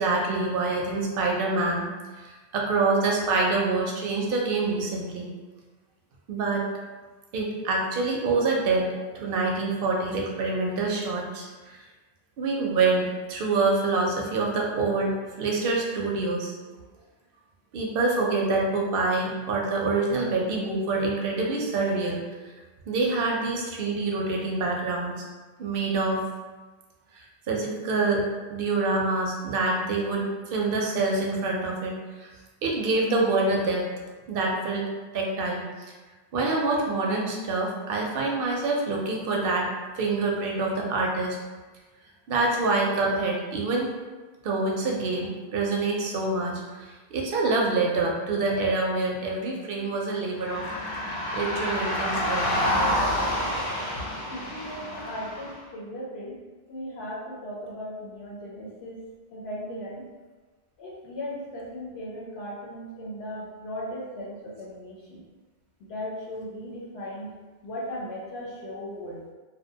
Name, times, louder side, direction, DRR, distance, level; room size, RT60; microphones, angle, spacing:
voice 1, 0.0-1.8 2.1-5.3 6.3-6.7 7.3-11.8 12.4-16.7 17.7-22.2 22.9-25.2 25.6-26.2 27.1-28.2 28.5-30.2 30.5-31.9 32.2-32.3 32.6-33.9 34.3-34.9 35.1-35.6 36.3-39.7 40.0-41.4 42.3-43.9 44.4-50.7 51.3-52.5, right 3 dB, 65° right, -1 dB, 0.7 m, -26 dB
sound 1, 50.4-55.6, left 1 dB, 40° left, 0.3 m, -28 dB
voice 2, 54.3-56.3 56.7-59.0 59.3-60.0 60.8-65.2 65.8-67.3 67.6-69.3, equal, 75° left, -5 dB, 0.8 m, -37 dB
2.4 x 2.1 x 2.7 m, 1.3 s
omnidirectional pair, 1.1 m